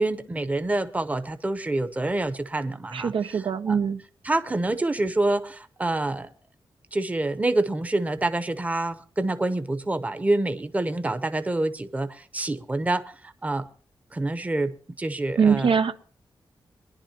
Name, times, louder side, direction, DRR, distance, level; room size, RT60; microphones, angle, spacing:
voice 1, 0.0-3.8 4.2-6.3 6.9-13.7 14.1-15.7, right 2 dB, 15° right, 0.8 m, -27 dB
voice 2, 2.9-4.0 15.4-16.0, right 6 dB, 80° right, 0.8 m, -22 dB
23.0 x 11.0 x 2.9 m
wide cardioid pair, 145°, 9 cm